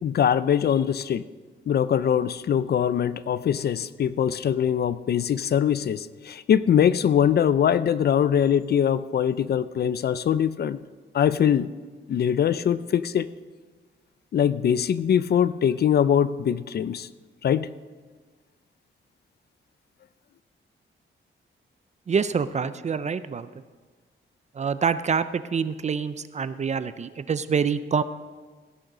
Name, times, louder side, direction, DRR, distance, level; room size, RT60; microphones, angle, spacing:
voice 1, 0.0-1.2 1.7-10.8 11.1-11.7 12.1-13.3 14.3-17.1 17.4-17.7, left 9 dB, 50° left, 15 dB, 0.4 m, -22 dB
voice 2, 22.1-23.5 24.6-28.0, right 6 dB, 35° right, 13 dB, 0.4 m, -26 dB
16.5 x 6.5 x 6.0 m, 1.4 s
wide cardioid pair, 170°, 21 cm